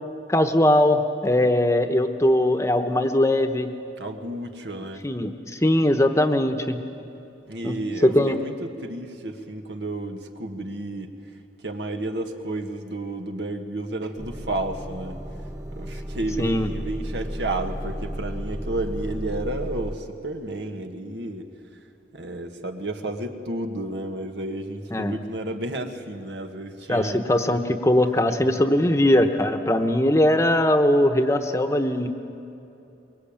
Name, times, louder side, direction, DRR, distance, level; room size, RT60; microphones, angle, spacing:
voice 1, 0.3-3.7 5.0-6.8 7.6-8.4 16.4-16.7 24.9-25.1 26.9-32.1, left 1 dB, 15° left, 7 dB, 1.1 m, -20 dB
voice 2, 4.0-5.0 7.5-11.1 11.6-15.2 15.7-21.5 22.1-27.2 28.3-28.6, right 2 dB, 75° right, 5 dB, 1.8 m, -32 dB
Motor vehicle (road) / Engine starting / Idling, 14.2-20.0, equal, 15° right, 0.8 m, -33 dB
24.0 x 22.0 x 8.9 m, 2.8 s
head